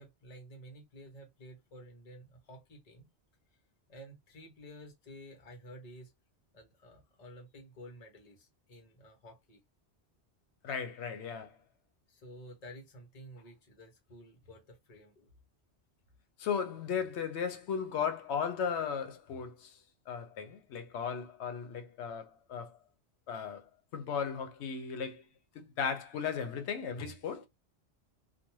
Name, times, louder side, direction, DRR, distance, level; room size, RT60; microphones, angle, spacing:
voice 1, 0.0-3.1 3.9-6.1 6.5-9.6 12.1-15.3, equal, 40° left, 0.9 m, -52 dB
voice 2, 10.6-11.6 16.4-19.8 20.1-22.8 23.3-23.6 23.9-25.2 25.5-27.5, left 6 dB, 80° left, 0.9 m, -36 dB
2.5 x 2.2 x 3.0 m
omnidirectional pair, 1.1 m